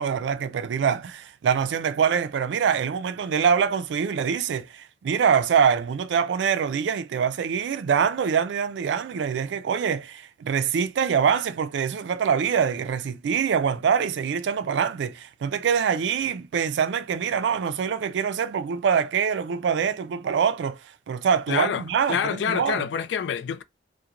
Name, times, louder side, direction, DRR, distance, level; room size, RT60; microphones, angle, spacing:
voice 1, 0.0-20.8 21.1-22.9, right 7 dB, 85° right, 0.3 m, -24 dB
voice 2, 21.5-21.8 22.1-23.6, left 7 dB, 90° left, 0.3 m, -27 dB
2.4 x 2.1 x 2.8 m
head